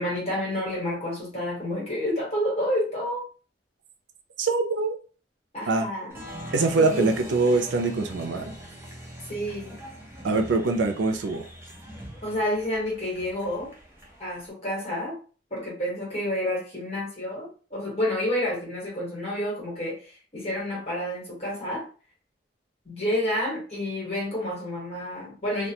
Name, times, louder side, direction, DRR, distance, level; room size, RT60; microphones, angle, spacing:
voice 1, 0.0-3.3 5.5-6.2 6.8-7.3 9.2-9.8 12.2-13.7 14.2-15.1 15.5-21.9 22.8-25.7, left 1 dB, 35° left, 1.3 m, -29 dB
voice 2, 4.4-4.9 5.7-5.9 6.5-8.5 10.2-11.4, right 3 dB, 85° right, 0.5 m, -23 dB
Applause, 6.1-14.5, equal, 15° right, 0.6 m, -42 dB
2.3 x 2.2 x 2.9 m
head